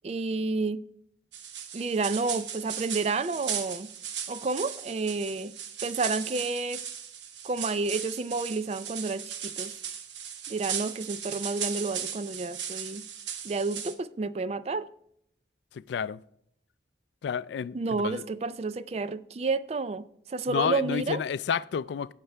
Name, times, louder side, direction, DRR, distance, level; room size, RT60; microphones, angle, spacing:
voice 1, 0.0-0.8 1.7-3.9 4.3-5.5 5.8-6.8 7.4-9.8 10.5-13.0 13.4-14.9 17.7-21.2, right 3 dB, 35° right, 0.3 m, -30 dB
sound 1, 1.3-13.9, right 8 dB, 85° right, 1.0 m, -37 dB
voice 2, 15.9-16.2 17.2-18.2 20.5-22.1, left 7 dB, 75° left, 0.3 m, -30 dB
17.0 x 6.7 x 3.4 m
head